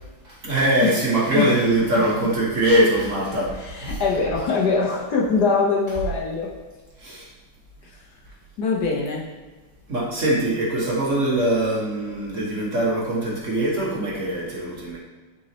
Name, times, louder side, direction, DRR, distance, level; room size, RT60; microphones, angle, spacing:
voice 1, 0.2-4.0 7.0-7.3 9.9-15.0, right 1 dB, 45° right, -4 dB, 1.4 m, -22 dB
voice 2, 3.7-6.5 7.8-7.9 8.6-9.2, left 4 dB, 60° left, -3 dB, 1.4 m, -22 dB
9.1 x 4.1 x 2.9 m, 1.3 s
omnidirectional pair, 2.1 m